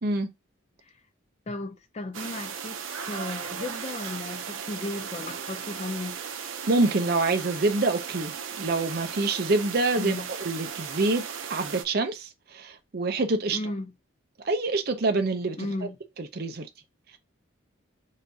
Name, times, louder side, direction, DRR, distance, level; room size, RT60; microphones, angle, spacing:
voice 1, 1.5-6.2 10.0-10.3 13.5-13.9 15.6-16.0, left 2 dB, 30° left, 0.5 m, -35 dB
sound 1, 2.1-11.8, right 7 dB, 80° right, 0.7 m, -36 dB
voice 2, 6.7-11.2 11.5-13.6 14.4-15.7 16.2-16.7, right 3 dB, 50° right, 0.6 m, -26 dB
6.5 x 2.6 x 2.7 m
head